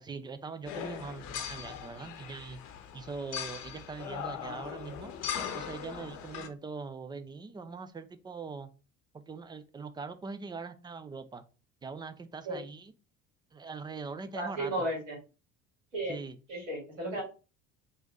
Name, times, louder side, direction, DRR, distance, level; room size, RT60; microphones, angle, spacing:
voice 1, 0.0-2.6 2.9-5.1 5.5-8.7 9.1-11.4 11.8-12.9 13.5-14.7 16.1-16.4, right 4 dB, 10° right, 10 dB, 0.3 m, -42 dB
sound 1, 0.7-6.5, left 9 dB, 50° left, 0.8 m, -40 dB
voice 2, 14.3-15.2 15.9-16.2 16.5-17.2, right 1 dB, 80° right, -3 dB, 1.6 m, -34 dB
3.9 x 2.6 x 4.0 m, 0.32 s
figure-of-eight pair, 60°, 38 cm